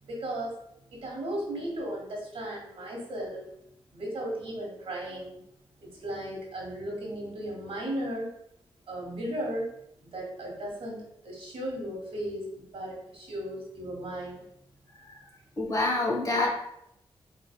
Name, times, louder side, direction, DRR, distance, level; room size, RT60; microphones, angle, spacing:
voice 1, 0.1-0.5 0.8-3.5 3.9-5.4 5.8-8.3 8.9-9.7 10.1-14.4, right 1 dB, 80° right, -2 dB, 1.3 m, -35 dB
voice 2, 15.6-16.5, left 2 dB, 35° left, -1 dB, 1.1 m, -26 dB
4.0 x 3.2 x 2.3 m, 0.78 s
cardioid pair, 80°, 10 cm